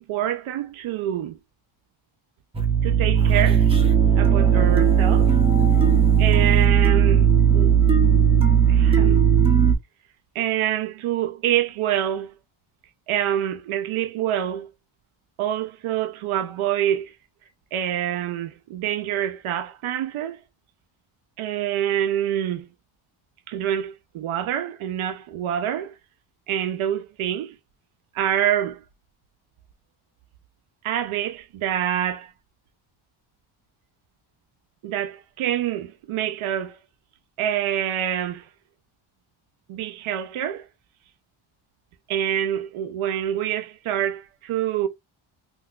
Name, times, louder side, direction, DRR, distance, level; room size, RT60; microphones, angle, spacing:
voice 1, 0.0-1.4 2.8-3.7 4.2-5.4 6.2-7.3 7.5-7.8 8.7-9.2 10.3-12.3 13.1-14.7 15.4-17.1 17.7-20.4 21.4-22.7 23.5-25.9 26.5-27.5 28.1-28.8 30.8-32.3 34.8-36.8 37.4-38.5 39.7-40.7 42.1-44.9, right 11 dB, 85° right, 0.6 m, -26 dB
sound 1, 2.5-9.7, right 8 dB, 10° right, 0.5 m, -17 dB
3.9 x 2.5 x 2.2 m
wide cardioid pair, 160°, 48 cm